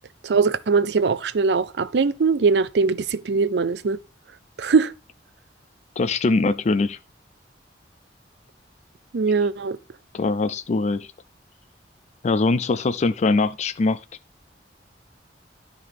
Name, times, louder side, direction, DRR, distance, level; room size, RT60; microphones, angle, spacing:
voice 1, 0.2-4.0 4.6-4.9 9.1-9.8, right 4 dB, 70° right, 0.5 m, -21 dB
voice 2, 6.0-7.0 10.1-11.1 12.2-14.0, left 3 dB, 40° left, 0.4 m, -22 dB
11.0 x 3.7 x 4.7 m
head